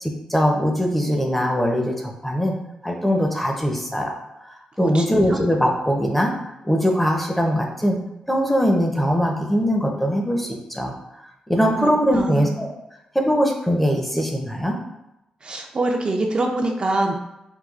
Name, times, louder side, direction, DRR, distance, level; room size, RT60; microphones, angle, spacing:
voice 1, 0.0-2.5 2.8-4.1 4.4-6.3 6.6-8.0 8.3-10.9 11.5-12.7 13.1-14.8, equal, 5° left, 1 dB, 0.6 m, -21 dB
voice 2, 4.8-5.4 11.6-12.5 15.4-17.1, right 2 dB, 45° right, 1 dB, 0.5 m, -25 dB
4.5 x 2.3 x 2.4 m, 0.89 s
cardioid pair, 75°, 2 cm